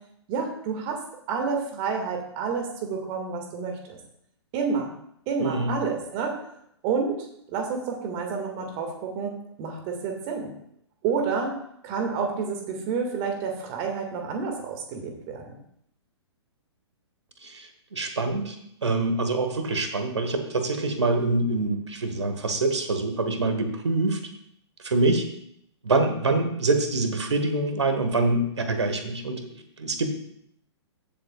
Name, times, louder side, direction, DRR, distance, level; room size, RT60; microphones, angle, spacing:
voice 1, 0.3-1.0 1.3-4.0 4.5-4.9 5.3-6.4 6.8-10.5 11.0-11.5 11.8-15.6, right 5 dB, 35° right, 3 dB, 2.0 m, -29 dB
voice 2, 5.4-5.7 17.4-18.6 18.8-24.2 24.8-25.3 25.8-30.1, right 2 dB, 70° right, 7 dB, 1.6 m, -25 dB
15.5 x 7.2 x 2.4 m, 0.73 s
figure-of-eight pair, 120°, 15 cm